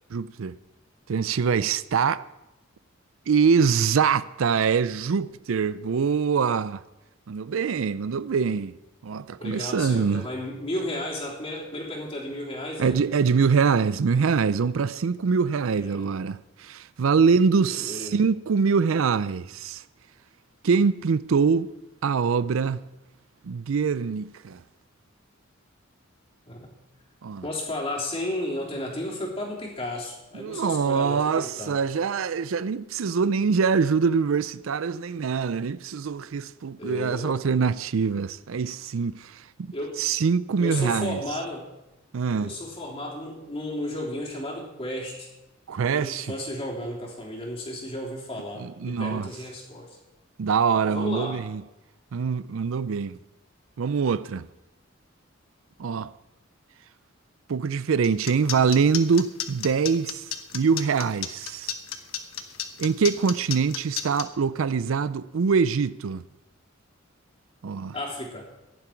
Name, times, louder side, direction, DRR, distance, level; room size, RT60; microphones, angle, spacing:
voice 1, 0.1-0.6 1.1-2.2 3.3-6.8 7.3-8.7 9.0-10.3 12.8-19.8 20.6-21.7 22.0-22.8 23.4-24.6 27.2-27.4 30.3-39.4 40.0-41.2 42.1-42.6 45.7-46.3 48.6-49.3 50.4-51.6 52.1-53.2 53.8-54.5 55.8-56.1 57.5-60.2 60.5-61.7 62.8-66.2 67.6-67.9, right 5 dB, 75° right, 0.4 m, -24 dB
voice 2, 9.4-13.0 15.7-16.1 17.7-18.2 26.5-26.7 27.4-31.8 36.8-37.5 39.7-40.0 40.6-41.7 42.4-45.3 45.9-50.0 50.8-51.4 67.9-68.5, left 1 dB, 30° left, 3.4 m, -33 dB
sound 1, 58.0-64.2, left 10 dB, 80° left, 1.1 m, -32 dB
15.5 x 11.0 x 4.5 m
head